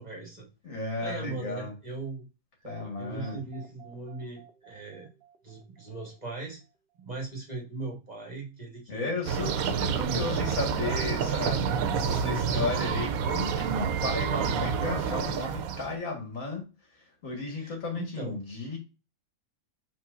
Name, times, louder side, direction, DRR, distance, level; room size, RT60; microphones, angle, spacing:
voice 1, 0.0-0.5 1.0-2.3 3.0-5.1 5.4-6.6 6.9-9.1 10.1-10.3 12.3-12.6 17.6-18.4, right 3 dB, 30° right, -1 dB, 1.6 m, -39 dB
voice 2, 0.6-1.7 2.6-3.4 8.9-18.8, left 3 dB, 70° left, 1 dB, 2.0 m, -34 dB
sound 1, 2.6-6.6, right 8 dB, 55° right, 0.7 m, -52 dB
sound 2, 9.3-16.0, right 7 dB, 80° right, 1.0 m, -28 dB
5.4 x 3.6 x 2.4 m, 0.30 s
omnidirectional pair, 1.5 m